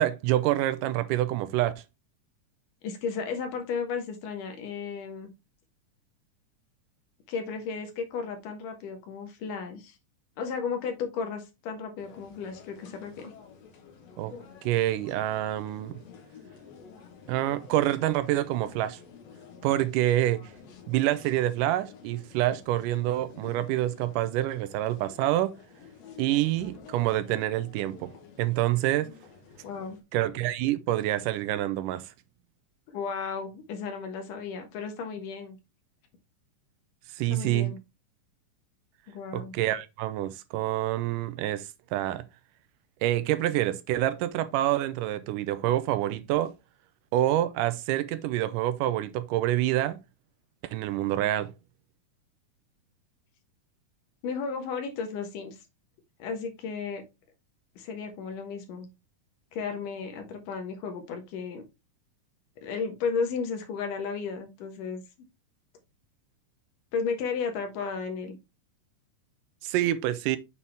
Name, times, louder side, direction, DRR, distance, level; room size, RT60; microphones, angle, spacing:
voice 1, 0.0-1.7 14.2-14.4 14.6-16.0 17.3-19.0 19.6-20.4 20.9-25.6 26.2-28.1 28.4-29.1 30.1-32.1 37.2-37.7 39.3-42.2 43.0-46.5 47.1-50.0 50.7-51.5 69.6-70.4, right 14 dB, 90° right, 2.2 m, -27 dB
voice 2, 2.8-5.3 7.3-10.0 10.4-13.3 29.6-30.0 32.9-35.6 37.3-37.8 39.1-39.5 54.2-55.6 56.2-57.0 57.8-58.9 59.5-61.6 62.6-65.0 66.9-68.4, left 5 dB, 80° left, 2.9 m, -34 dB
sound 1, 12.0-30.0, left 6 dB, 60° left, 2.2 m, -50 dB
7.2 x 4.2 x 3.4 m
omnidirectional pair, 3.7 m